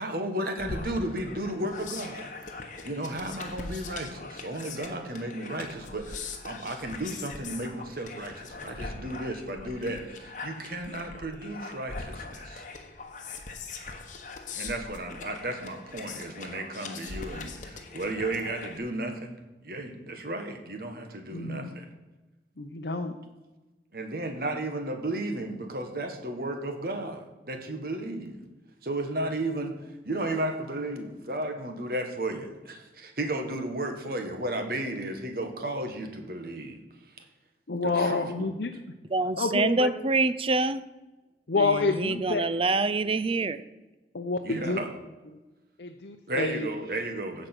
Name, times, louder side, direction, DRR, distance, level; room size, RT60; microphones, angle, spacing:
voice 1, 0.0-2.3 2.8-12.6 14.5-19.4 19.6-21.9 23.9-28.4 28.8-29.7 30.0-36.8 37.8-38.5 44.4-44.9 46.3-47.5, right 1 dB, 55° right, 5 dB, 1.5 m, -34 dB
sound 1, 0.6-18.8, left 3 dB, 45° left, 1.1 m, -41 dB
voice 2, 21.3-21.8 22.6-23.1 37.7-38.7 39.4-39.9 41.5-42.4 44.1-44.8 45.8-46.7, left 3 dB, 65° left, 4 dB, 0.7 m, -28 dB
voice 3, 39.1-40.8 41.6-43.6, right 3 dB, 30° right, 13 dB, 0.4 m, -26 dB
15.5 x 5.2 x 6.1 m, 1.1 s
head